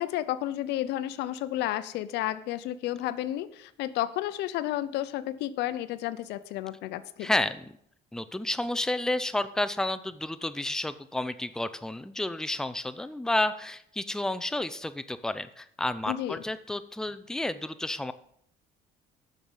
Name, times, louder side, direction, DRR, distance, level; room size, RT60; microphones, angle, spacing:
voice 1, 0.0-7.4 16.1-16.4, left 13 dB, 85° left, 15 dB, 0.6 m, -32 dB
voice 2, 7.2-7.7 8.1-18.1, left 1 dB, 5° left, 13 dB, 0.5 m, -31 dB
9.1 x 6.4 x 7.2 m, 0.70 s
cardioid pair, 110°, 17 cm